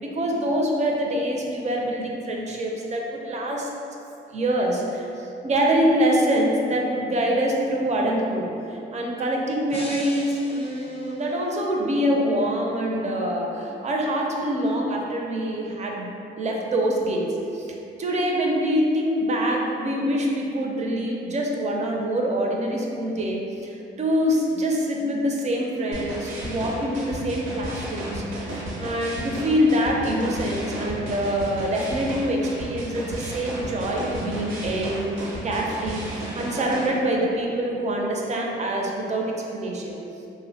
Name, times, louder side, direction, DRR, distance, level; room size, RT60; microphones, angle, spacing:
voice 1, 0.0-3.7 4.3-16.0 16.4-35.1 35.4-39.9, equal, 35° right, -1 dB, 0.4 m, -25 dB
sound 1, 9.7-11.8, left 1 dB, 30° left, 0.6 m, -40 dB
sound 2, 25.9-36.9, right 1 dB, 80° right, 0.7 m, -33 dB
2.9 x 2.1 x 2.6 m, 2.7 s
cardioid pair, 90°, 20 cm